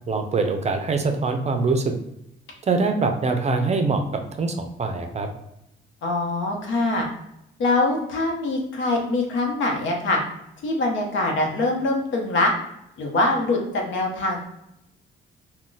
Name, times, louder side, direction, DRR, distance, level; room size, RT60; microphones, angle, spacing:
voice 1, 0.1-1.9 2.7-4.0 4.4-5.3, right 3 dB, 35° right, 6 dB, 0.5 m, -23 dB
voice 2, 6.0-7.1 7.6-10.2 10.6-12.5 13.0-14.4, left 2 dB, 75° left, 1 dB, 0.8 m, -23 dB
2.4 x 2.2 x 3.8 m, 0.82 s
cardioid pair, 90°, 20 cm